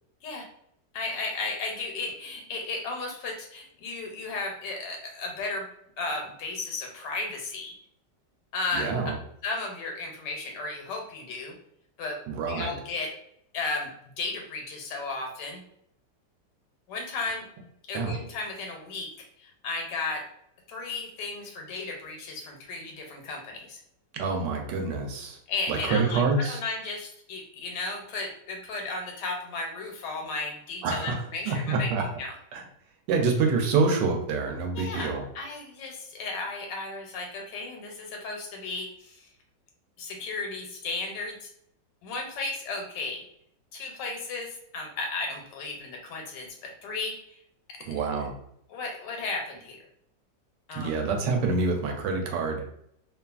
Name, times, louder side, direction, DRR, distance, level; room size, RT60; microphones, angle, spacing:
voice 1, 0.9-5.7 6.0-7.7 8.5-8.9 9.4-11.5 12.0-12.2 12.5-13.1 13.5-13.9 14.2-15.6 16.9-17.5 17.9-19.1 19.4-20.2 20.7-23.8 25.5-31.9 32.2-32.3 34.7-39.3 40.0-41.5 42.0-43.2 43.7-47.4 47.7-48.0 48.7-49.8 50.7-51.0, left 3 dB, 80° left, 1 dB, 1.2 m, -34 dB
voice 2, 8.7-9.2 12.3-12.7 17.9-18.1 24.1-25.4 25.7-26.6 30.8-31.2 31.5-32.1 32.5-32.6 33.1-35.2 47.9-48.4 50.7-52.7, right 4 dB, 80° right, 3 dB, 1.2 m, -26 dB
2.8 x 2.4 x 2.3 m, 0.71 s
omnidirectional pair, 1.9 m